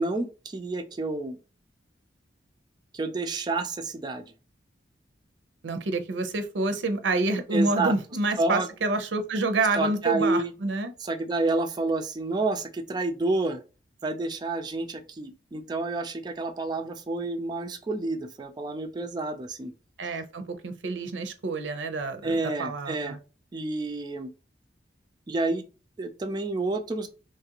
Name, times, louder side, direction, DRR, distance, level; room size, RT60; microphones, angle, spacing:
voice 1, 0.0-1.4 2.9-4.3 7.5-7.9 8.4-8.7 9.7-10.5 11.0-13.6 14.0-19.7 22.2-23.1 23.5-24.3 25.3-25.6 26.0-27.1, right 2 dB, 25° right, 6 dB, 0.3 m, -29 dB
voice 2, 5.6-10.9 20.0-23.2, right 3 dB, 90° right, 8 dB, 0.6 m, -28 dB
3.2 x 2.4 x 2.8 m, 0.32 s
head